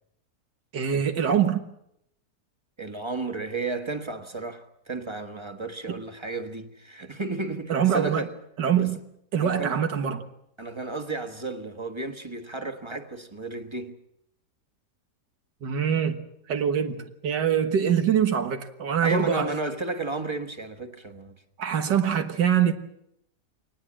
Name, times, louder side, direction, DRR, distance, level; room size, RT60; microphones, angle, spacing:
voice 1, 0.7-1.6 5.9-6.0 7.7-8.3 8.6-9.0 9.3-10.3 15.6-16.2 16.5-19.5 21.6-22.7, right 8 dB, 90° right, 2.1 m, -24 dB
voice 2, 2.8-8.4 9.4-9.8 10.6-14.0 19.0-21.4, right 3 dB, 15° right, 1.4 m, -33 dB
24.0 x 19.5 x 7.5 m
omnidirectional pair, 1.8 m